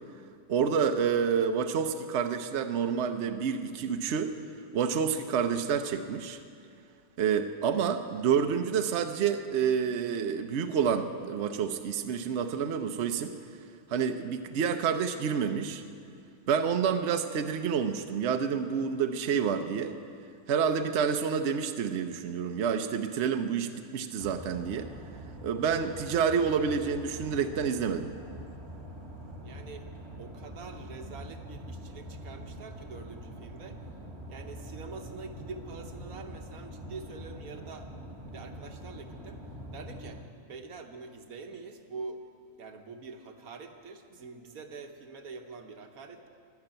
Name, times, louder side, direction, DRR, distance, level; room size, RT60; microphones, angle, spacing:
voice 1, 0.5-4.4 4.7-6.4 7.2-13.3 13.9-15.8 16.5-20.0 20.5-24.9 25.4-28.1, right 7 dB, 60° right, 7 dB, 0.9 m, -28 dB
sound 1, 24.2-40.2, equal, 20° right, 1.5 m, -44 dB
voice 2, 29.4-29.9 30.2-33.8 34.3-37.9 38.2-39.4 39.7-42.2 42.6-46.3, right 4 dB, 80° right, 5 dB, 1.5 m, -45 dB
12.5 x 12.0 x 8.9 m, 2.3 s
omnidirectional pair, 1.5 m